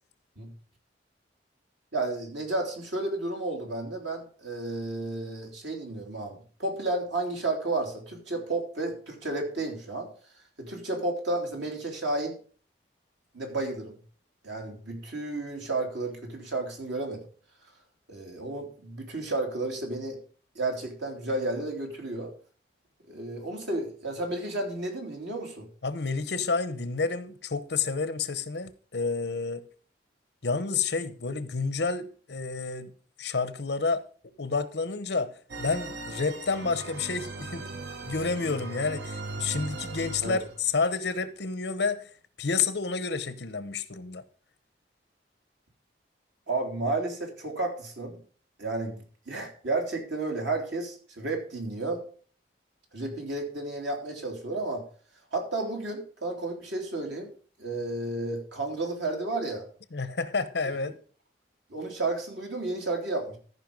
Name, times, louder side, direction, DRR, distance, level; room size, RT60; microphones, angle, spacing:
voice 1, 1.9-10.1 10.6-12.3 13.3-14.0 14.4-17.2 18.1-20.2 20.5-22.3 23.1-25.7 40.2-40.4 46.5-48.2 48.6-52.0 52.9-54.8 55.3-57.3 57.6-59.6 61.7-63.4, right 2 dB, 90° right, 3.3 m, -32 dB
voice 2, 25.8-29.6 30.4-32.9 33.2-34.0 34.4-35.3 35.6-37.8 38.0-42.1 42.4-44.2 59.9-61.0, left 4 dB, 70° left, 0.9 m, -29 dB
sound 1, 35.5-40.7, right 2 dB, 70° right, 1.1 m, -38 dB
14.0 x 5.5 x 5.2 m
head